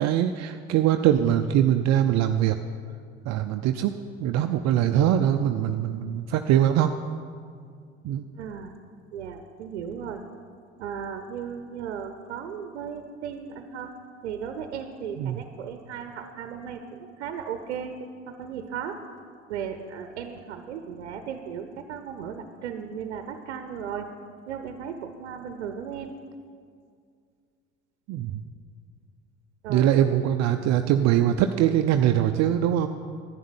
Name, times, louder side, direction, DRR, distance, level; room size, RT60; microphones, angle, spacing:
voice 1, 0.0-2.6 3.3-3.9 4.2-6.9 8.0-8.2 15.2-15.4 28.1-28.4 29.7-32.9, right 11 dB, 50° right, 7 dB, 0.7 m, -22 dB
voice 2, 8.4-8.7 9.1-10.2 10.8-13.9 14.2-17.9 18.3-19.0 19.5-24.1 24.5-26.1 29.6-29.9, right 7 dB, 80° right, 7 dB, 0.9 m, -36 dB
11.0 x 10.5 x 8.8 m, 2.2 s
hypercardioid pair, 65°, 34 cm